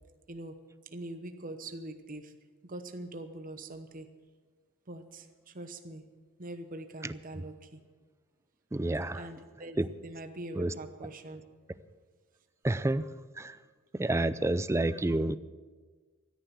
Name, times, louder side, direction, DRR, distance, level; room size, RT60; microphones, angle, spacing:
voice 1, 0.9-2.3 2.6-4.1 4.9-6.0 6.4-7.8 9.1-11.4, right 1 dB, 40° right, 8 dB, 1.0 m, -43 dB
voice 2, 7.0-7.4 8.7-9.3 9.8-9.9 10.5-10.7 12.6-13.1 13.4-13.6 13.9-15.4, right 2 dB, 15° right, 15 dB, 0.4 m, -29 dB
14.0 x 10.5 x 7.7 m, 1.4 s
head